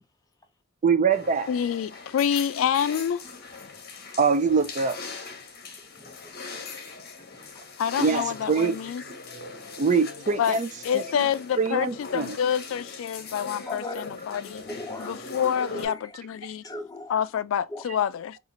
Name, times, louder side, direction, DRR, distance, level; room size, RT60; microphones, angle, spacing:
voice 1, 0.8-1.5 4.2-5.0 8.0-8.8 9.8-10.7 10.9-11.0 11.6-12.4, right 5 dB, 40° right, 0.4 m, -23 dB
sound 1, 1.1-15.9, left 4 dB, 55° left, 0.8 m, -40 dB
voice 2, 1.5-3.2 7.8-9.0 10.4-10.6 10.8-14.6 15.0-16.6 17.1-18.4, left 8 dB, 80° left, 0.3 m, -27 dB
voice 3, 6.0-6.4 6.7-6.8 7.2-7.5 13.7-14.1 14.8-15.2 15.7-16.1 16.6-17.2 17.7-17.8, left 1 dB, 20° left, 0.5 m, -39 dB
2.9 x 2.4 x 3.7 m
head